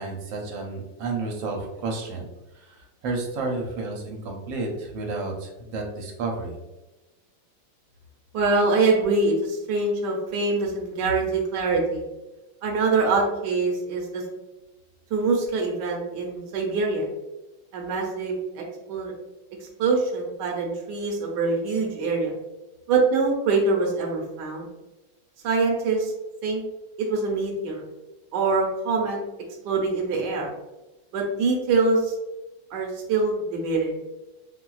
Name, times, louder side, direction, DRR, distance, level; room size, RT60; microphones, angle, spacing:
voice 1, 0.0-2.2 2.5-6.6, right 3 dB, 85° right, 0 dB, 1.4 m, -31 dB
voice 2, 8.3-12.0 12.6-14.2 15.1-17.1 17.7-19.1 19.8-22.3 22.9-24.7 25.4-26.1 26.4-26.6 27.0-27.8 28.3-29.2 29.6-30.5 31.1-32.1 32.7-33.9, right 3 dB, 70° right, -1 dB, 1.3 m, -24 dB
4.1 x 2.3 x 2.3 m, 1.0 s
omnidirectional pair, 2.0 m